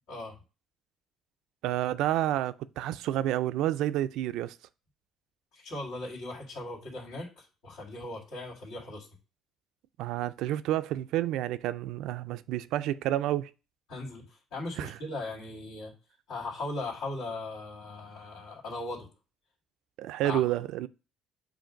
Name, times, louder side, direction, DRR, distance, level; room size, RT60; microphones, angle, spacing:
voice 1, 1.6-4.6 10.0-13.5 14.8-15.0 20.0-20.9, right 13 dB, 80° right, 0.3 m, -29 dB
voice 2, 5.5-9.1 13.9-15.9 16.3-19.1 20.2-20.4, left 2 dB, 85° left, 2.2 m, -38 dB
7.7 x 2.6 x 5.0 m
cardioid pair, 110°, 0 cm